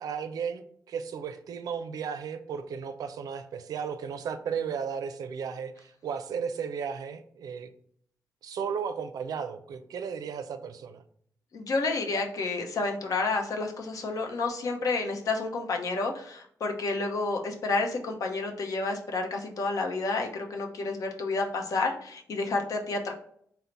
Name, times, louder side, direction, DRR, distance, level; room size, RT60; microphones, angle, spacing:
voice 1, 0.0-7.7 8.4-11.0, right 6 dB, 75° right, 10 dB, 0.4 m, -35 dB
voice 2, 11.5-23.1, left 3 dB, 65° left, 2 dB, 0.7 m, -30 dB
3.9 x 2.0 x 4.3 m, 0.64 s
cardioid pair, 95°, 6 cm